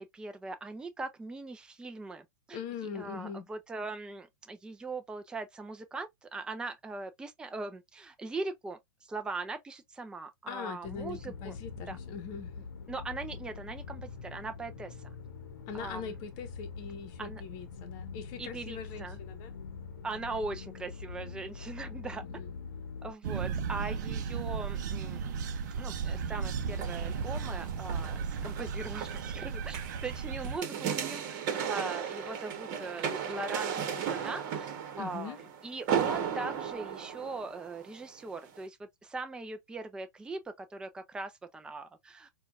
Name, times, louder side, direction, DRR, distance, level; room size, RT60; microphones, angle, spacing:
voice 1, 0.0-2.6 2.9-11.5 11.9-12.0 12.9-15.0 15.7-16.1 17.2-17.4 18.4-19.2 20.0-22.2 23.0-25.4 25.8-31.4 31.6-35.4 35.6-42.3, right 3 dB, 10° right, 0.5 m, -40 dB
voice 2, 2.5-3.5 10.5-12.6 15.7-19.6 22.2-22.6 35.0-35.4, left 6 dB, 40° left, 0.9 m, -42 dB
sound 1, 10.8-23.1, left 5 dB, 80° left, 0.8 m, -44 dB
sound 2, 23.2-30.6, right 6 dB, 65° right, 0.6 m, -35 dB
sound 3, 26.7-37.9 38.5-38.6, right 8 dB, 45° right, 1.2 m, -36 dB
4.3 x 2.3 x 2.4 m
hypercardioid pair, 115°, 11 cm